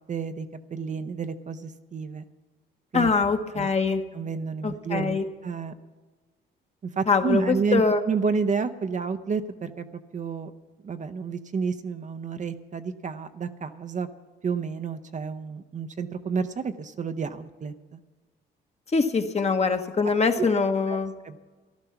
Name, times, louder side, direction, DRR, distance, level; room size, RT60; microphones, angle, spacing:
voice 1, 0.1-2.2 2.9-3.1 3.5-3.7 4.1-5.7 7.0-9.9 10.1-10.5 10.8-14.1 14.4-18.0 20.4-20.5 20.9-21.0 21.2-21.4, right 5 dB, 40° right, 9 dB, 0.7 m, -30 dB
voice 2, 2.9-4.0 4.6-5.2 7.1-8.0 18.9-21.1, left 4 dB, 35° left, 7 dB, 1.1 m, -23 dB
14.5 x 11.5 x 5.8 m, 1.3 s
cardioid pair, 90°, 20 cm